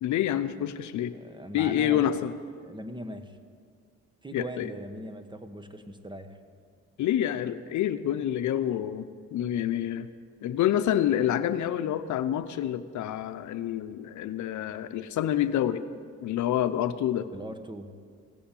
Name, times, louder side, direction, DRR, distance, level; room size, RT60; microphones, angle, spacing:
voice 1, 0.0-1.1 1.5-2.3 4.3-4.7 7.0-9.0 9.3-10.1 10.4-15.8 16.2-17.3, left 11 dB, 75° left, 11 dB, 0.7 m, -27 dB
voice 2, 1.1-2.2 2.6-3.4 4.2-6.4 17.3-17.9, equal, 15° right, 8 dB, 1.1 m, -40 dB
16.5 x 8.5 x 8.4 m, 2.1 s
cardioid pair, 90°, 30 cm